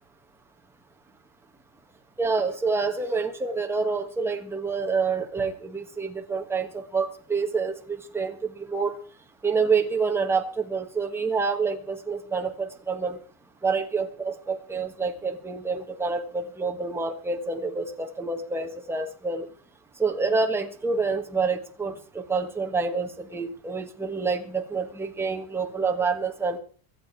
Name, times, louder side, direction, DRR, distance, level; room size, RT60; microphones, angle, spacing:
voice 1, 2.2-8.9 9.4-13.2 13.6-19.5 20.0-26.6, right 4 dB, 5° right, 3 dB, 1.4 m, -27 dB
23.5 x 8.9 x 4.6 m, 0.42 s
supercardioid pair, 165°, 45 cm